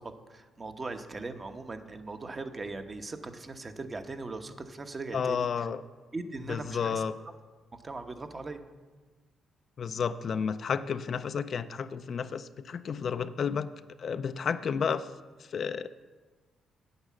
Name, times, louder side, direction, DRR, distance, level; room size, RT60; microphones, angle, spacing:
voice 1, 0.0-5.5 6.1-7.0 7.7-8.6, right 3 dB, 30° right, 7 dB, 1.0 m, -39 dB
voice 2, 5.1-5.8 6.5-7.2 9.8-13.7 14.0-15.1 15.4-15.9, left 6 dB, 55° left, 11 dB, 0.4 m, -31 dB
9.7 x 8.1 x 7.4 m, 1.4 s
cardioid pair, 75°, 0 cm